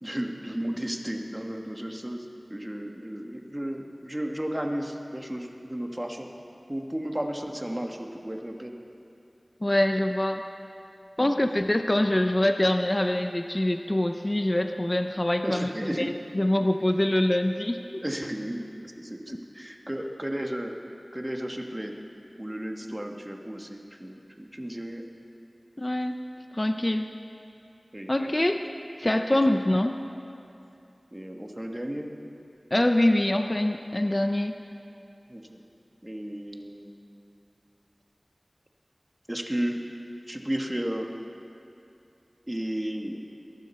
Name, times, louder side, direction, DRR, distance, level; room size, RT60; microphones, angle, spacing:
voice 1, 0.0-6.3 6.7-8.7 11.2-11.4 15.4-16.1 18.0-20.7 21.1-22.0 22.4-25.0 27.9-28.1 29.5-29.6 31.1-32.1 35.3-35.6 36.0-36.9 39.3-39.8 40.3-41.1 42.5-43.2, right 1 dB, 20° right, 2 dB, 1.4 m, -33 dB
voice 2, 9.6-10.4 11.2-15.7 16.0-18.0 25.8-26.1 26.5-27.1 28.1-28.6 29.0-29.9 32.7-34.5, left 1 dB, 35° left, 6 dB, 0.6 m, -24 dB
22.5 x 11.5 x 4.4 m, 2.7 s
wide cardioid pair, 45°, 0 cm